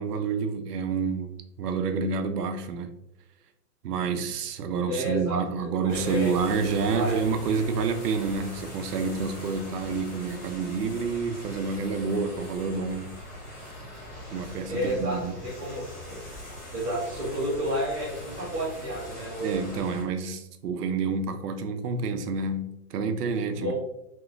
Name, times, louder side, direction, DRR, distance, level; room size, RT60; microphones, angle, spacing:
voice 1, 0.0-2.9 3.8-13.2 14.3-15.4 19.4-23.7, right 5 dB, 75° right, 0.6 m, -28 dB
voice 2, 4.8-6.7 6.9-7.3 14.7-16.2 16.7-19.6 23.4-23.7, equal, 10° right, 0.4 m, -31 dB
sound 1, 5.9-20.0, left 1 dB, 25° left, 1.0 m, -42 dB
3.4 x 2.9 x 2.2 m
hypercardioid pair, 170°, 48 cm